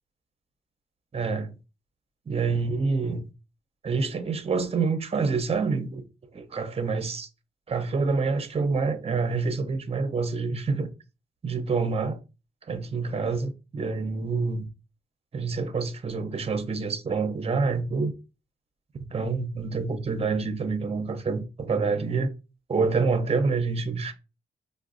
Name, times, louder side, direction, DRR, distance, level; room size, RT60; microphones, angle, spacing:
voice 1, 1.1-1.5 2.3-3.2 3.8-6.0 6.3-7.3 7.7-10.9 11.4-12.2 12.7-14.7 15.3-18.1 18.9-22.3 22.7-24.1, right 4 dB, 30° right, 0.5 m, -27 dB
4.6 x 2.0 x 2.4 m
supercardioid pair, 50°, 20 cm